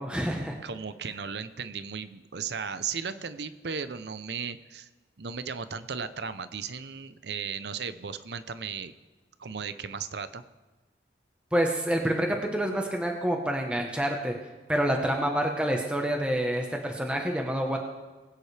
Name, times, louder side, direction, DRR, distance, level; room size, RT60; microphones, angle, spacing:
voice 1, 0.0-0.6 11.5-14.3 14.7-17.8, right 1 dB, 5° right, 1 dB, 1.0 m, -27 dB
voice 2, 0.6-4.9 5.2-8.9 9.4-10.4, right 6 dB, 70° right, 12 dB, 0.6 m, -36 dB
20.5 x 9.4 x 3.3 m, 1.2 s
head